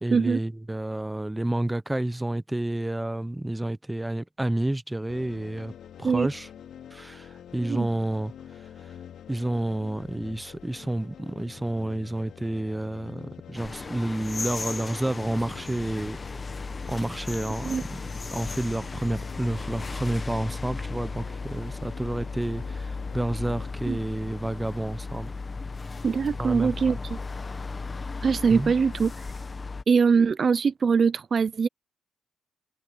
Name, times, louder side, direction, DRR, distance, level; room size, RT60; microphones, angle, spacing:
voice 1, 0.0-5.7 6.0-6.5 6.9-8.9 9.3-16.2 16.9-18.0 18.3-25.3 26.4-27.0 28.5-28.7, right 1 dB, 10° right, 0.8 m, -30 dB
sound 1, 5.1-23.7, left 9 dB, 65° left, 2.9 m, -47 dB
sound 2, 13.5-29.8, left 4 dB, 25° left, 1.3 m, -36 dB
voice 2, 26.0-27.2 28.2-29.1 29.9-31.7, right 5 dB, 45° right, 0.7 m, -22 dB
cardioid pair, 90°, 0 cm